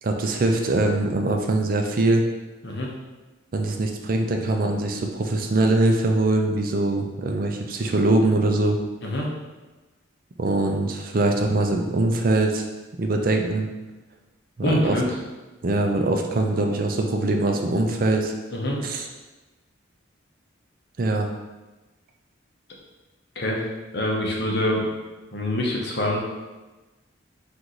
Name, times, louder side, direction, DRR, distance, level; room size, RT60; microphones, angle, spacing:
voice 1, 0.0-2.2 3.5-8.8 10.4-12.7 13.0-13.7 14.6-15.0 15.6-18.3 18.8-19.1 21.0-21.3, right 2 dB, 45° right, 3 dB, 0.4 m, -22 dB
voice 2, 14.6-15.0 18.5-18.8 23.4-23.6 23.9-24.9 25.3-26.2, left 1 dB, 55° left, -2 dB, 0.8 m, -25 dB
4.6 x 2.6 x 3.8 m, 1.2 s
head